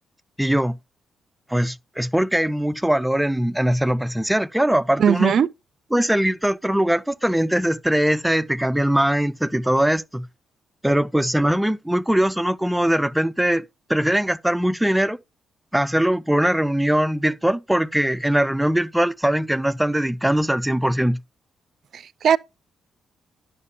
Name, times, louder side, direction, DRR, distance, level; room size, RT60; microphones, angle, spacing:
voice 1, 0.4-0.8 1.5-5.4 5.9-10.3 10.8-13.6 13.9-15.2 15.7-21.2, right 1 dB, 5° right, 0.4 m, -21 dB
voice 2, 5.0-5.5 21.9-22.4, right 8 dB, 65° right, 0.4 m, -18 dB
11.0 x 6.5 x 2.8 m
supercardioid pair, 60°, 0 cm